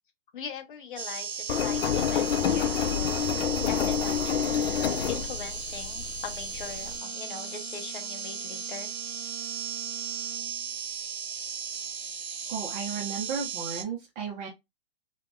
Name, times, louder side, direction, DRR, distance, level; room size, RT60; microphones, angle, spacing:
voice 1, 0.3-1.3 1.6-3.3 3.7-8.9, left 7 dB, 55° left, 0.9 m, -41 dB
sound 1, 1.0-13.8, right 7 dB, 90° right, 0.7 m, -36 dB
Engine, 1.5-7.0, left 8 dB, 70° left, 0.5 m, -28 dB
Bowed string instrument, 6.6-10.8, right 7 dB, 15° left, 1.1 m, -48 dB
voice 2, 12.5-14.5, right 6 dB, 15° right, 0.4 m, -34 dB
3.4 x 2.1 x 2.3 m
figure-of-eight pair, 120°, 31 cm